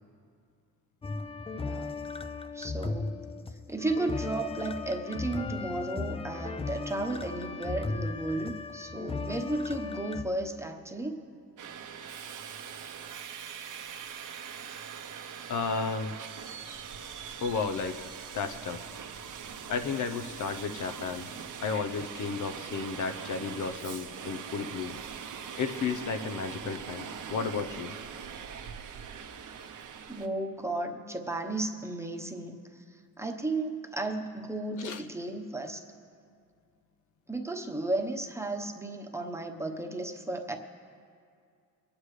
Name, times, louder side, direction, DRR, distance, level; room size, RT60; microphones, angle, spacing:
sound 1, 1.0-10.2, left 3 dB, 20° left, 0.4 m, -36 dB
voice 1, 1.5-2.0 2.5-3.1 3.7-11.2 21.3-21.5 30.1-32.6 33.2-35.8 37.3-40.6, right 2 dB, 10° right, 2 dB, 1.0 m, -34 dB
Subway metro underground, 11.6-30.3, right 7 dB, 65° right, 0.9 m, -42 dB
voice 2, 15.5-16.1 17.4-18.0 18.3-18.8 19.7-21.3 21.6-25.0 25.6-27.9 34.8-35.0, left 5 dB, 60° left, 7 dB, 0.7 m, -33 dB
24.5 x 9.8 x 3.2 m, 2.3 s
cardioid pair, 115°, 33 cm